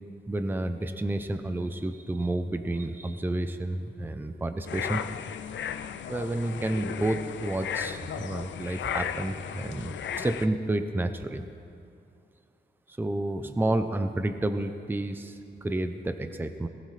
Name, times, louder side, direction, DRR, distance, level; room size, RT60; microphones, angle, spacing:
voice 1, 0.3-5.0 6.1-11.4 12.9-16.7, right 1 dB, 10° right, 8 dB, 0.6 m, -30 dB
sound 1, 4.7-10.5, left 8 dB, 85° left, 0.5 m, -35 dB
18.5 x 17.0 x 3.3 m, 2.4 s
wide cardioid pair, 125°, 19 cm